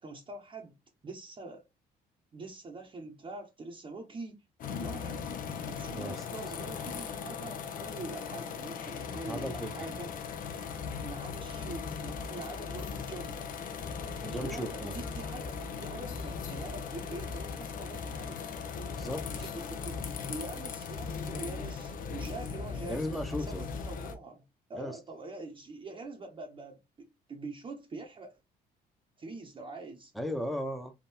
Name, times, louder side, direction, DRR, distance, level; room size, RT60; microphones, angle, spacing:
voice 1, 0.0-0.8 1.0-1.6 2.3-4.4 4.8-5.2 5.6-10.1 11.0-13.5 14.4-18.5 19.3-23.0 23.4-24.4 24.7-28.4 29.2-30.1, right 3 dB, 30° right, 0.9 m, -44 dB
sound 1, 4.6-24.1, left 5 dB, 55° left, 0.8 m, -38 dB
voice 2, 5.9-6.3 9.3-9.9 14.2-14.9 18.9-19.5 22.9-23.6 24.7-25.0 30.1-30.9, equal, ahead, 0.9 m, -36 dB
3.6 x 2.6 x 4.2 m
cardioid pair, 110°, 17 cm